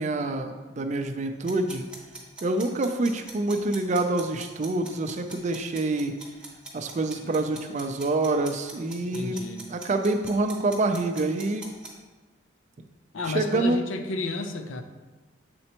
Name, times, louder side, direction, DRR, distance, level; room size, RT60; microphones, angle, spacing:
voice 1, 0.0-1.9 2.4-6.1 6.7-9.4 9.7-11.6 13.3-13.8, right 2 dB, 35° right, 6 dB, 0.4 m, -26 dB
sound 1, 1.4-11.9, right 3 dB, 5° right, 1.0 m, -42 dB
voice 2, 9.1-9.7 13.1-14.8, left 3 dB, 85° left, 7 dB, 0.6 m, -32 dB
7.7 x 4.2 x 2.9 m, 1.2 s
head